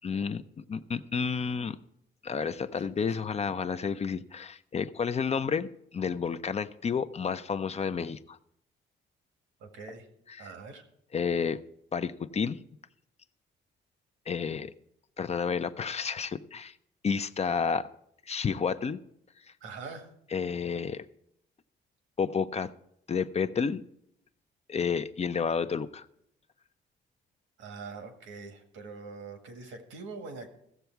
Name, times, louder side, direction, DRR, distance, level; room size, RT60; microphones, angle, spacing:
voice 1, 0.0-1.8 2.2-8.4 10.3-10.5 11.1-11.6 11.9-12.6 14.3-14.7 15.2-16.7 17.0-17.9 18.3-19.0 20.3-21.0 22.2-22.7 23.1-23.8 24.7-26.1, left 6 dB, 35° left, 12 dB, 0.5 m, -31 dB
voice 2, 9.6-10.1 10.4-10.8 19.6-20.1 27.6-30.5, right 4 dB, 85° right, 5 dB, 1.8 m, -43 dB
15.5 x 7.0 x 4.6 m, 0.74 s
cardioid pair, 90°, 20 cm